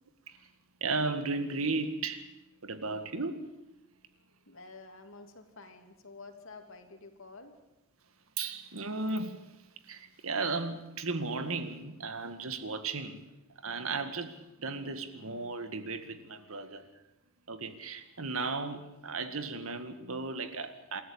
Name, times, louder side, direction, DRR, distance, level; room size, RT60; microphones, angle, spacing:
voice 1, 0.8-2.3 2.6-3.5 8.4-13.3 13.6-16.9 17.5-21.0, right 3 dB, 80° right, 9 dB, 2.0 m, -35 dB
voice 2, 4.5-7.5, left 3 dB, 65° left, 5 dB, 2.9 m, -50 dB
28.0 x 13.5 x 8.9 m, 0.97 s
head